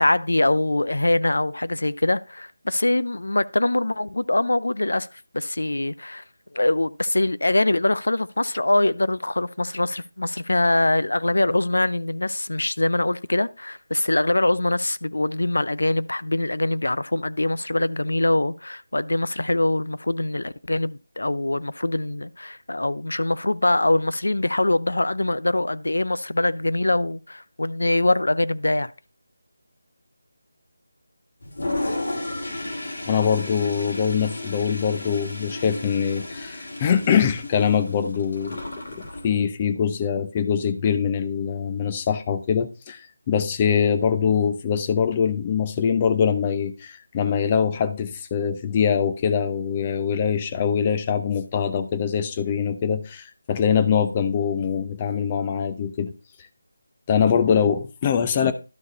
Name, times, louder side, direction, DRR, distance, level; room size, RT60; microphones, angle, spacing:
voice 1, 0.0-5.1 5.3-6.2 6.5-28.9, left 2 dB, 80° left, 0.5 m, -23 dB
Toilet flush, 31.4-39.3, left 2 dB, 65° left, 2.7 m, -33 dB
voice 2, 33.0-56.1 57.1-58.5, left 7 dB, 25° left, 0.6 m, -23 dB
11.5 x 4.7 x 4.2 m
figure-of-eight pair, 165°, 0 cm